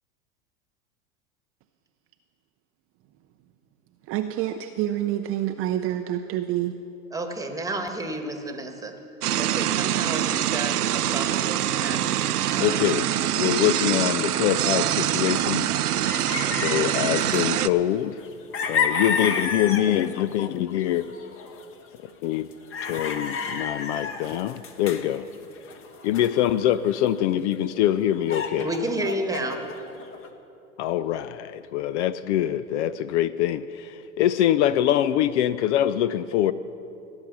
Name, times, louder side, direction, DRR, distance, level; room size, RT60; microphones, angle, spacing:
voice 1, 4.1-6.8, right 12 dB, 30° right, 7 dB, 0.5 m, -27 dB
voice 2, 7.1-8.9 9.4-12.2 12.5-12.9 16.4-16.9 28.6-29.6, right 1 dB, 10° right, 5 dB, 1.4 m, -31 dB
sound 1, 9.2-17.7, right 12 dB, 85° right, 0.6 m, -24 dB
voice 3, 12.6-13.1 13.4-15.7 16.5-18.2 18.7-21.1 22.2-22.5 22.8-25.3 26.0-28.8 30.8-36.5, left 11 dB, 50° left, 15 dB, 0.5 m, -24 dB
sound 2, 14.2-15.3 15.7-15.8 16.0-17.8 18.2-20.5 20.7-21.8 22.5-27.2 27.5-27.6 27.8-30.3, left 5 dB, 30° left, 1.2 m, -31 dB
18.0 x 8.8 x 6.1 m, 2.8 s
hypercardioid pair, 100°, 44 cm